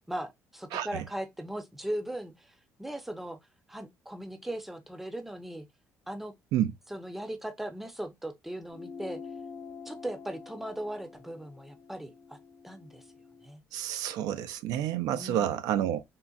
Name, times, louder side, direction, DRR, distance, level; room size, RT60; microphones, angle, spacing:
voice 1, 0.1-3.4 3.7-5.7 6.1-6.3 6.9-9.2 9.9-12.4 12.6-13.0 13.4-13.6 15.1-15.6, right 1 dB, 5° right, 0.5 m, -38 dB
voice 2, 0.7-1.0 6.5-6.7 13.7-16.0, right 11 dB, 90° right, 0.4 m, -29 dB
sound 1, 8.7-13.5, left 5 dB, 50° left, 0.9 m, -47 dB
3.8 x 2.1 x 2.3 m
cardioid pair, 130°, 6 cm